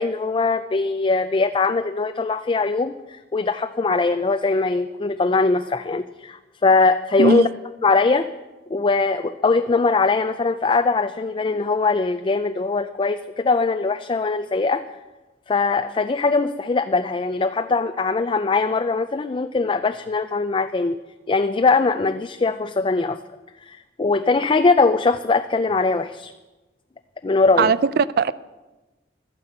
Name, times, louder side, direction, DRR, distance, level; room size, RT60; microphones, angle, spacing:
voice 1, 0.0-7.5 7.8-8.3 8.7-14.8 15.5-21.0 21.3-23.2 23.7-26.3 27.2-27.7, left 3 dB, 30° left, 9 dB, 0.4 m, -21 dB
voice 2, 27.6-28.3, right 5 dB, 60° right, 17 dB, 0.4 m, -19 dB
12.5 x 9.6 x 7.9 m, 1.1 s
head